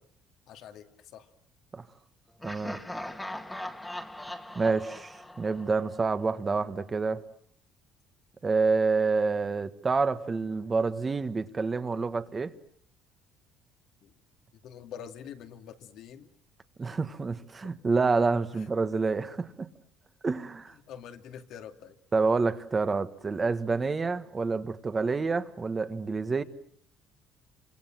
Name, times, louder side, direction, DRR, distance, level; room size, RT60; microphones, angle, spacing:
voice 1, 0.5-1.3 14.0-14.2 14.5-16.3 16.8-17.0 18.5-18.7 20.7-22.0, left 8 dB, 70° left, 5 dB, 2.6 m, -46 dB
Laughter, 2.4-6.3, left 1 dB, 5° left, 1.9 m, -40 dB
voice 2, 2.4-2.8 4.5-7.2 8.4-12.5 16.8-19.7 20.2-20.7 22.1-26.4, right 4 dB, 25° right, 10 dB, 1.5 m, -28 dB
29.5 x 25.5 x 7.7 m, 0.63 s
cardioid pair, 130°, 0 cm